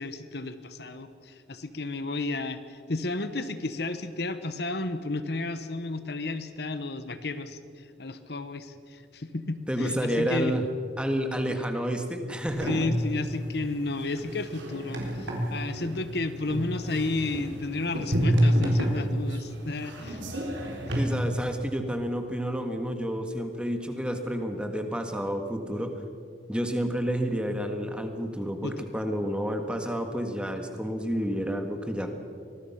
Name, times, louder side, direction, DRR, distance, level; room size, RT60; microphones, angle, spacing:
voice 1, 0.0-10.6 11.5-11.6 12.6-20.2 20.8-21.0 28.6-28.9, left 2 dB, 60° left, 11 dB, 1.0 m, -32 dB
voice 2, 9.7-10.6 11.0-12.8 20.9-26.0 26.5-32.1, equal, 5° right, 5 dB, 1.6 m, -30 dB
sound 1, 12.5-21.0, equal, 80° right, 4.0 m, -29 dB
24.5 x 19.5 x 5.8 m, 2.4 s
head